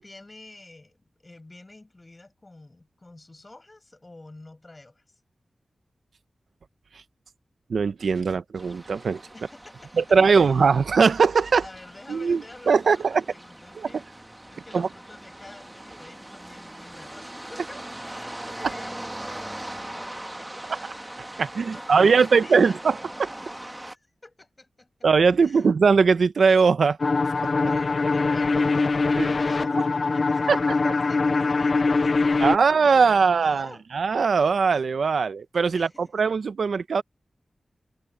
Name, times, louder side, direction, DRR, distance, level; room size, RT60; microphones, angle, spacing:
voice 1, 0.0-5.0 9.3-9.9 10.3-10.6 11.6-14.0 14.5-17.8 18.1-19.3 19.9-20.8 21.7-22.8 23.6-24.9 25.4-25.7 27.7-33.8 35.7-36.2, left 2 dB, 30° left, 6.8 m, -48 dB
voice 2, 7.7-9.2 10.0-11.6 12.1-13.2 13.8-13.9 14.7-14.9 21.4-23.3 25.0-27.0 29.2-29.3 30.5-30.6 30.8-30.9 32.4-37.0, right 5 dB, 80° right, 0.9 m, -20 dB
sound 1, 8.6-24.0, right 1 dB, 15° right, 1.6 m, -40 dB
sound 2, 27.0-32.6, left 3 dB, 50° left, 0.4 m, -22 dB
wide cardioid pair, 80°, 0 cm